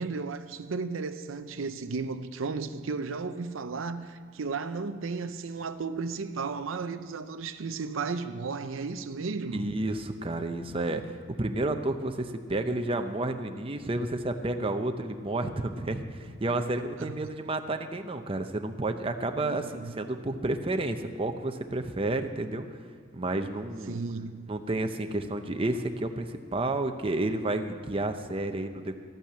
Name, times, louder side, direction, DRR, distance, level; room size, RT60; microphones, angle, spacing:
voice 1, 0.0-9.7 17.0-17.2 19.4-20.0 23.9-24.5, right 4 dB, 90° right, 0.6 m, -34 dB
voice 2, 9.5-11.0 11.4-22.7 23.1-24.0 24.5-29.0, right 2 dB, 30° right, 0.7 m, -31 dB
13.5 x 8.6 x 7.4 m
head